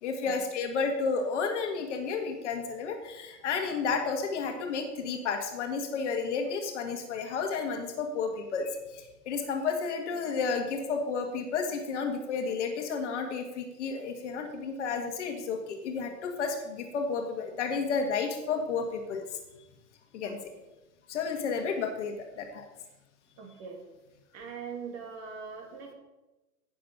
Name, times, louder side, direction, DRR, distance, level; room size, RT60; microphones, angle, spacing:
voice 1, 0.0-19.2 20.1-20.4 21.1-22.7, left 5 dB, 45° left, 4 dB, 1.8 m, -32 dB
voice 2, 20.2-20.6 23.4-23.8 24.3-25.9, right 5 dB, 30° right, 2 dB, 2.8 m, -42 dB
16.5 x 6.8 x 5.5 m, 1.1 s
figure-of-eight pair, 105°, 47 cm